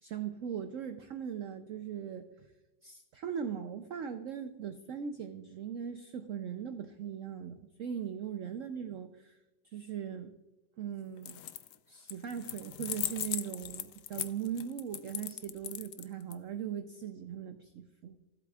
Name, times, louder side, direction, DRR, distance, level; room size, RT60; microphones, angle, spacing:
voice 1, 0.0-2.5 2.8-9.4 9.6-10.3 10.8-11.4 11.9-18.2, right 8 dB, 75° right, 8 dB, 0.7 m, -39 dB
sound 1, 11.2-11.8 12.1-16.3, left 11 dB, 90° left, 0.7 m, -38 dB
16.5 x 8.2 x 2.3 m, 1.1 s
omnidirectional pair, 2.0 m